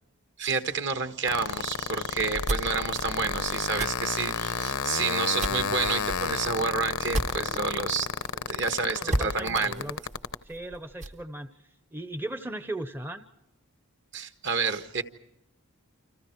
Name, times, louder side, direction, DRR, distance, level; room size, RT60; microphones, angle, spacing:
voice 1, 0.4-8.1 8.3-9.9 14.1-15.0, right 5 dB, 55° right, 8 dB, 1.5 m, -29 dB
sound 1, 1.2-10.3, left 6 dB, 75° left, 0.9 m, -30 dB
sound 2, 2.2-7.9 8.2-8.3 8.6-8.7 9.1-11.2, right 1 dB, 30° right, 0.9 m, -34 dB
voice 2, 8.9-10.0 10.4-13.2, right 1 dB, 10° right, 10 dB, 0.8 m, -37 dB
29.0 x 26.5 x 4.6 m, 0.89 s
head